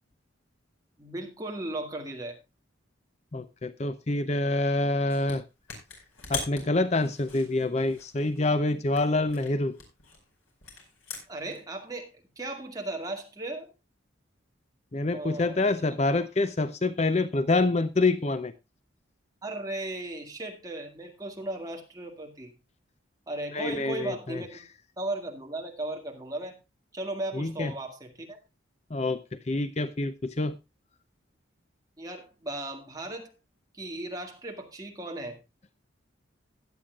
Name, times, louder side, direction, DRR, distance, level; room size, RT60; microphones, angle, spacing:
voice 1, 1.0-2.4 11.3-13.7 15.1-15.6 19.4-22.5 23.3-24.7 25.0-26.6 26.9-28.4 32.0-33.3 33.7-35.4, right 2 dB, 20° right, 2.0 m, -36 dB
voice 2, 3.3-5.4 6.3-9.8 14.9-18.5 23.5-24.4 27.3-27.7 28.9-30.6, left 2 dB, 35° left, 0.5 m, -26 dB
sound 1, 5.1-5.4 5.7-8.5 8.9-11.6, left 4 dB, 85° left, 4.8 m, -41 dB
16.0 x 10.5 x 2.4 m
head